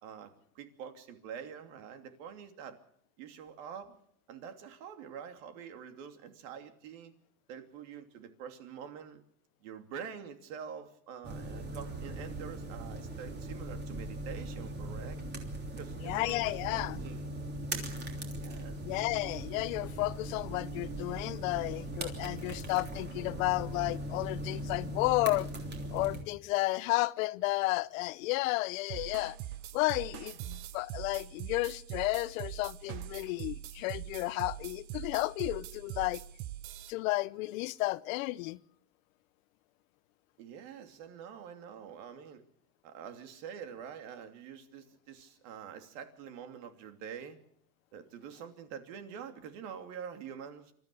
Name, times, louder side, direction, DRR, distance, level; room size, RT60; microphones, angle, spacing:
voice 1, 0.0-2.8 3.2-4.0 4.3-7.2 7.5-9.2 9.6-15.2 15.8-17.3 18.4-18.8 40.4-42.4 42.8-47.4 47.9-50.7, right 7 dB, 60° right, 3.0 m, -46 dB
sound 1, 11.2-26.2, right 1 dB, 25° right, 3.2 m, -39 dB
voice 2, 16.0-17.0 18.8-25.5 25.9-29.4 29.7-36.2 36.9-38.6, left 20 dB, 65° left, 0.9 m, -32 dB
sound 2, 28.9-36.9, right 13 dB, 40° right, 0.9 m, -43 dB
26.5 x 13.5 x 8.5 m
supercardioid pair, 150°, 42 cm